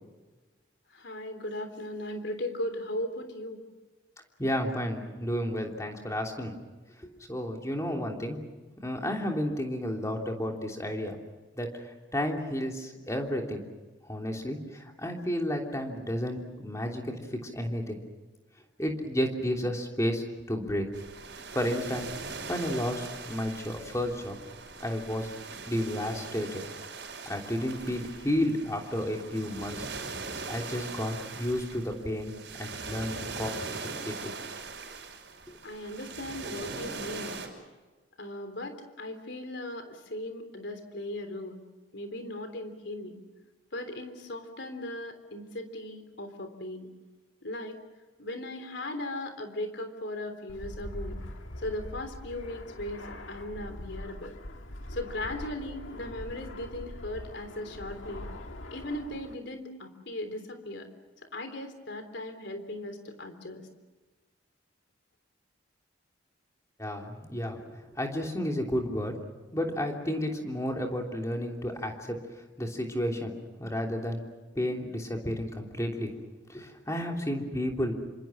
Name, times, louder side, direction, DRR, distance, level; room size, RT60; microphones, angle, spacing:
voice 1, 0.9-3.6 35.6-37.4 38.2-41.6 41.9-43.2 43.7-46.9 47.4-47.8 48.2-51.2 51.6-54.3 54.9-58.3 58.7-60.9 61.3-63.6, left 1 dB, 65° left, 7 dB, 3.5 m, -38 dB
voice 2, 4.4-6.6 7.3-8.5 8.8-11.2 11.6-13.6 14.0-18.0 18.8-20.9 21.5-24.4 24.8-25.3 25.7-26.6 27.2-29.9 30.5-32.3 32.6-33.5 33.8-34.3 66.8-69.2 69.5-73.3 73.6-74.2 74.5-76.1 76.5-77.9, equal, 15° left, 1 dB, 3.2 m, -32 dB
sound 1, 20.9-37.5, right 4 dB, 65° right, 5.4 m, -41 dB
Fixed-wing aircraft airplane, 50.5-59.3, left 1 dB, 85° left, 1.9 m, -42 dB
28.0 x 26.0 x 6.3 m, 1.2 s
head